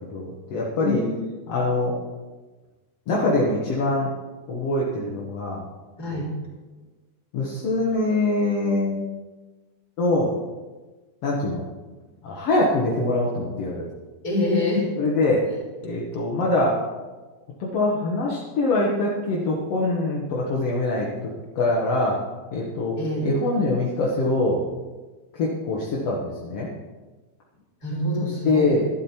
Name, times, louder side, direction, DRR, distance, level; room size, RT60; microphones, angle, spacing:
voice 1, 0.0-1.0 1.5-2.0 3.1-4.1 4.5-5.6 6.1-6.2 7.3-9.1 10.0-10.3 11.2-11.6 12.2-13.9 15.0-15.5 15.8-16.8 17.6-22.2 22.5-23.0 23.2-24.6 25.3-26.7 28.4-28.8, left 2 dB, 55° left, -4 dB, 1.9 m, -23 dB
voice 2, 0.8-1.2 6.0-6.3 14.2-14.9 23.0-23.3 27.8-28.7, left 1 dB, 25° left, -3 dB, 4.1 m, -25 dB
12.0 x 12.0 x 4.4 m, 1.3 s
omnidirectional pair, 4.4 m